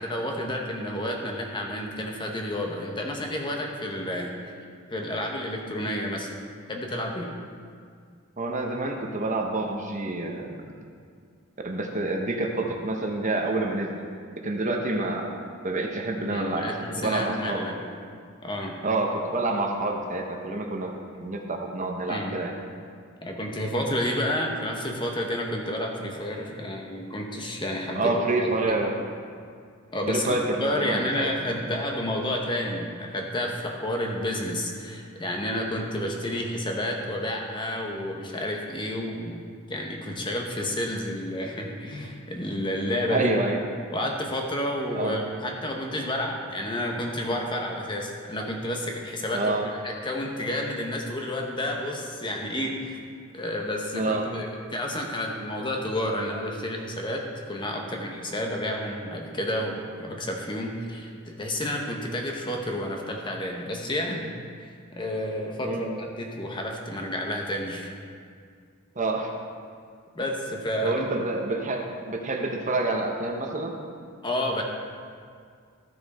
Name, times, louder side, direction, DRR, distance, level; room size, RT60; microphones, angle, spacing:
voice 1, 0.0-4.4 4.9-6.3 6.7-7.3 16.2-17.8 18.4-18.8 22.1-22.4 23.2-28.8 29.9-39.4 39.7-43.3 43.9-49.5 49.8-53.0 53.3-67.9 70.1-71.0 74.2-74.6, left 1 dB, 25° left, 1 dB, 1.0 m, -30 dB
voice 2, 8.4-10.5 11.6-14.0 14.4-15.3 15.6-16.7 17.0-17.6 18.8-20.9 21.2-22.5 27.9-29.0 30.1-31.3 43.1-43.6 44.9-45.2 49.3-49.7 53.9-54.3 65.6-65.9 69.0-69.3 70.8-73.7, right 2 dB, 35° right, 2 dB, 0.9 m, -28 dB
13.5 x 6.2 x 4.2 m, 2.1 s
head